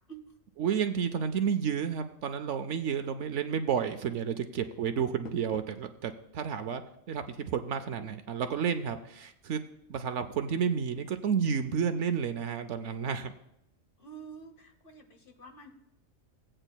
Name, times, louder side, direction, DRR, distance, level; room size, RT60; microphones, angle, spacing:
voice 1, 0.6-6.8 7.1-9.6 9.9-13.3, right 7 dB, 65° right, 9 dB, 0.8 m, -31 dB
Door, 4.7-5.9, left 6 dB, 65° left, 0.6 m, -49 dB
voice 2, 14.0-15.8, right 5 dB, 45° left, 6 dB, 1.0 m, -48 dB
16.5 x 8.8 x 2.2 m, 0.82 s
omnidirectional pair, 1.4 m